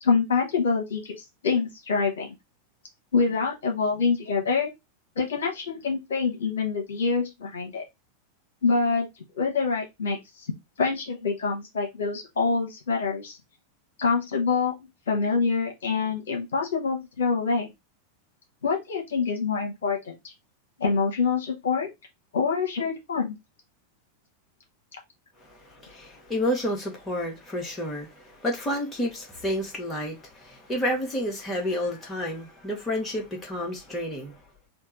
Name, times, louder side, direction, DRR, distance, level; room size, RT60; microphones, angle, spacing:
voice 1, 0.0-1.1 1.4-2.3 3.1-4.7 5.2-7.8 8.6-9.1 9.4-10.5 10.8-13.4 14.0-14.7 15.1-17.7 18.6-20.3 20.8-21.9 22.3-23.4, left 4 dB, 65° left, 1.0 m, -26 dB
voice 2, 25.4-34.4, equal, 15° left, 1.2 m, -30 dB
3.6 x 2.4 x 4.3 m
figure-of-eight pair, 90°, 0 cm